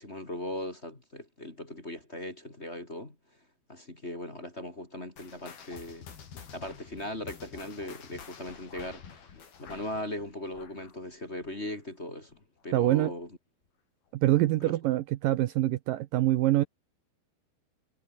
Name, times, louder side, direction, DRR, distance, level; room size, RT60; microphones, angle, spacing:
voice 1, 0.0-3.1 3.7-6.1 6.5-9.3 9.6-12.4 12.6-13.3 14.6-14.7, left 1 dB, 20° left, 2.9 m, -39 dB
sound 1, 5.2-12.0 12.3-12.6 13.2-13.3 14.1-14.2, left 7 dB, 70° left, 5.7 m, -49 dB
voice 2, 12.7-13.1 14.1-16.6, right 15 dB, 75° right, 2.3 m, -25 dB
omnidirectional pair, 4.5 m